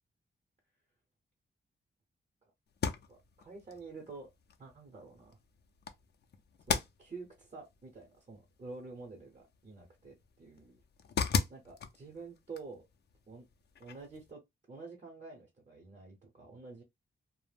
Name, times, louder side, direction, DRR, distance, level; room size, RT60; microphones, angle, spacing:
sound 1, 2.7-14.3, left 6 dB, 55° left, 0.5 m, -40 dB
voice 1, 3.1-4.3 4.6-5.4 6.7-10.8 11.5-12.9 13.3-13.4 13.8-14.4 14.7-16.8, right 3 dB, 35° right, 0.8 m, -49 dB
2.4 x 2.1 x 3.3 m
wide cardioid pair, 120°, 20 cm